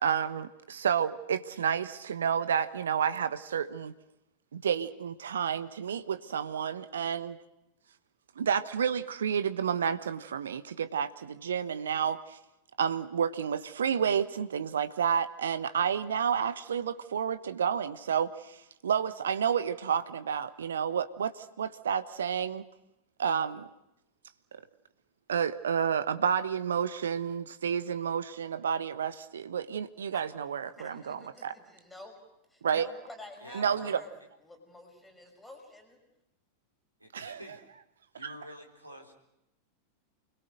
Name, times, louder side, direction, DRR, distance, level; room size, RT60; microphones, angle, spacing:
voice 1, 0.0-3.9 4.5-7.4 8.4-12.4 12.8-18.6 18.8-22.6 23.2-23.7 24.5-24.6 25.3-31.5 32.6-32.9 33.5-34.0 37.1-37.4 38.2-38.3, right 7 dB, 65° right, 12 dB, 1.3 m, -30 dB
voice 2, 30.7-32.1 32.5-34.1 34.4-36.0, left 1 dB, 5° left, 4 dB, 5.9 m, -49 dB
voice 3, 33.4-34.0 37.0-37.6 38.1-39.1, equal, 85° right, 3 dB, 4.2 m, -47 dB
29.0 x 22.0 x 6.5 m, 0.87 s
figure-of-eight pair, 90°, 0 cm